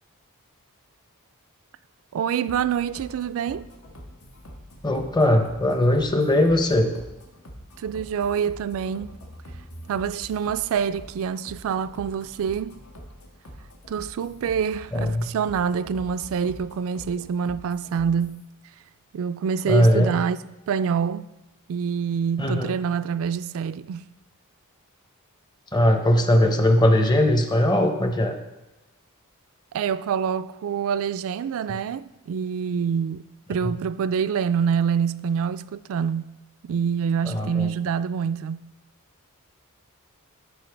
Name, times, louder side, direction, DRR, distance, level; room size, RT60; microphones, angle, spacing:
voice 1, 2.1-3.7 7.8-9.1 9.9-12.8 13.9-18.4 19.1-20.4 20.7-21.3 21.7-24.1 29.7-33.2 33.5-36.3 36.6-38.7, right 7 dB, 65° right, 0.3 m, -26 dB
sound 1, 2.5-18.4, equal, 80° left, 1.5 m, -44 dB
voice 2, 4.8-6.9 14.9-15.3 19.7-20.1 22.4-22.8 25.7-28.4 37.2-37.7, left 1 dB, 20° left, 0.7 m, -20 dB
12.5 x 5.4 x 3.4 m
head